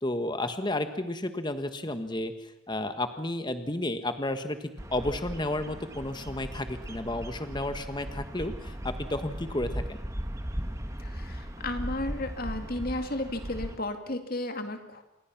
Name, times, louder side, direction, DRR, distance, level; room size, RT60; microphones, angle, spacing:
voice 1, 0.0-10.0, left 1 dB, 20° left, 9 dB, 1.3 m, -32 dB
Bird vocalization bird call bird song, 4.8-13.8, equal, 15° right, 1.3 m, -37 dB
voice 2, 11.0-15.0, left 1 dB, 45° left, 6 dB, 2.3 m, -34 dB
27.5 x 22.5 x 6.0 m, 0.90 s
head